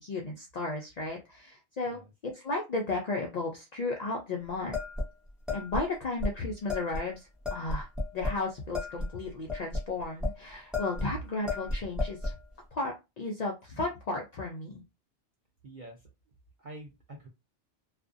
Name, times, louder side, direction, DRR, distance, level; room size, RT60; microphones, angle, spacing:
voice 1, 0.0-4.8 5.5-7.9 8.1-12.3 12.7-14.8, left 2 dB, 80° left, 0 dB, 0.3 m, -34 dB
sound 1, 4.7-5.9 6.2-6.3 6.7-7.0 7.4-8.4 8.7-10.3 10.7-11.1 11.5-12.4, left 2 dB, ahead, 0.7 m, -33 dB
voice 2, 15.6-16.1 16.6-17.3, right 1 dB, 55° right, 0 dB, 0.5 m, -47 dB
2.4 x 2.1 x 2.5 m, 0.25 s
omnidirectional pair, 1.3 m